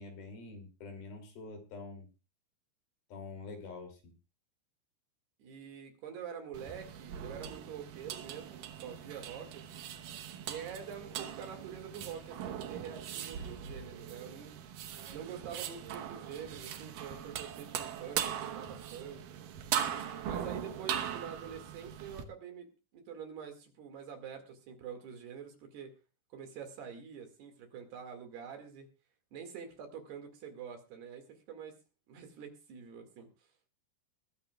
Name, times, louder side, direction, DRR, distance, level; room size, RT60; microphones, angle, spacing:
voice 1, 0.0-2.1 3.1-4.1, left 3 dB, 55° left, 4 dB, 4.3 m, -46 dB
voice 2, 5.4-9.9 10.4-14.5 15.1-19.2 20.2-22.7 22.9-25.9 26.3-28.9 29.3-31.8 32.1-33.3, right 7 dB, 60° right, 5 dB, 3.8 m, -46 dB
sound 1, 6.5-22.2, right 9 dB, 85° right, 1.9 m, -40 dB
22.0 x 14.5 x 2.3 m, 0.31 s
omnidirectional pair, 5.5 m